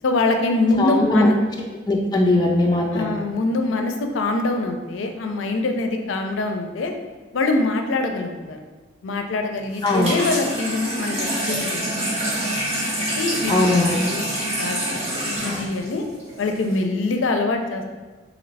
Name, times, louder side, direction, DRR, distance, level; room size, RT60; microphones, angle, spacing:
voice 1, 0.0-1.4 2.9-6.9 7.3-8.6 9.0-12.3 12.8-13.5 13.8-16.0 16.4-17.8, left 2 dB, 80° left, 5 dB, 0.4 m, -24 dB
voice 2, 0.8-1.4 1.9-3.2 9.8-10.1 13.5-14.0, left 2 dB, 20° left, -1 dB, 0.3 m, -19 dB
Water tap faucet / Sink (filling or washing), 9.7-16.8, right 1 dB, 35° right, 1.1 m, -26 dB
3.1 x 3.0 x 3.9 m, 1.3 s
head